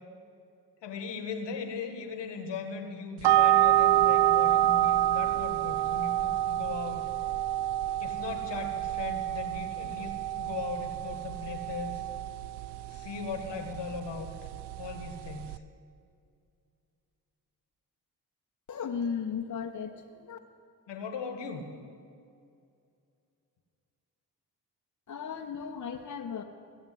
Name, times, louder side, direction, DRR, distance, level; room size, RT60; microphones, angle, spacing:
voice 1, 0.8-7.1 8.0-12.0 12.9-14.3 14.8-15.6 20.9-21.7, left 5 dB, 65° left, 6 dB, 1.6 m, -38 dB
sound 1, 3.2-15.6, right 13 dB, 60° right, 0.5 m, -28 dB
voice 2, 18.7-20.4 25.1-26.4, left 6 dB, 40° left, 3 dB, 1.1 m, -35 dB
17.0 x 7.2 x 7.7 m, 2.4 s
hypercardioid pair, 40°, 45 cm